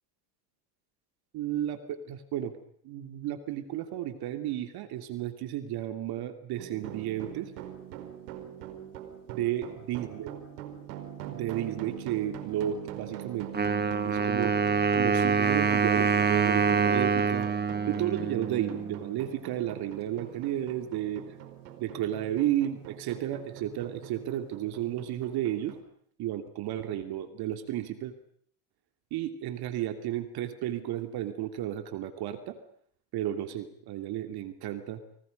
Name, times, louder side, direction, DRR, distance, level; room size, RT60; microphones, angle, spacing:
voice 1, 1.3-2.6 2.8-7.5 9.3-10.3 11.3-13.5 14.0-14.5 15.0-17.5 17.9-21.2 21.8-25.8 26.2-28.1 29.1-32.6 33.1-35.0, right 12 dB, 50° right, 7 dB, 2.9 m, -33 dB
sound 1, 6.6-25.8, right 10 dB, 80° right, 5.0 m, -43 dB
Wind instrument woodwind instrument, 13.5-19.2, right 5 dB, 20° right, 1.6 m, -26 dB
29.5 x 26.5 x 5.4 m, 0.63 s
supercardioid pair, 105°, 46 cm